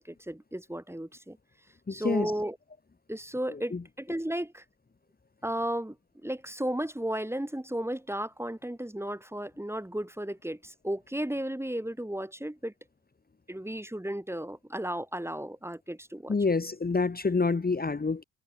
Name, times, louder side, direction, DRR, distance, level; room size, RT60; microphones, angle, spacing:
voice 1, 0.0-1.4 1.9-2.6 3.1-4.6 5.4-6.0 6.2-12.7 13.5-16.4, right 1 dB, 5° right, 2.3 m, -34 dB
voice 2, 1.9-2.3 3.5-3.8 16.3-18.2, left 4 dB, 20° left, 1.8 m, -27 dB
figure-of-eight pair, 40°, 42 cm